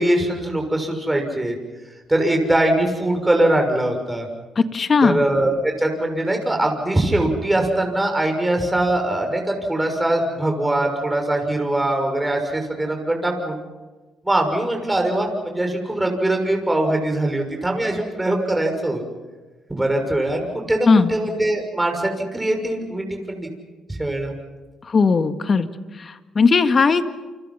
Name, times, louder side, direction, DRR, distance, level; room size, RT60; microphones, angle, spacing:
voice 1, 0.0-1.5 2.1-4.3 5.0-13.6 14.2-19.0 19.7-23.5 23.9-24.3, right 1 dB, 10° right, 3 dB, 6.4 m, -22 dB
voice 2, 4.6-5.2 20.9-21.1 24.9-25.7 26.0-27.1, left 4 dB, 40° left, 9 dB, 1.8 m, -17 dB
29.5 x 26.0 x 5.8 m, 1.3 s
cardioid pair, 80°, 0 cm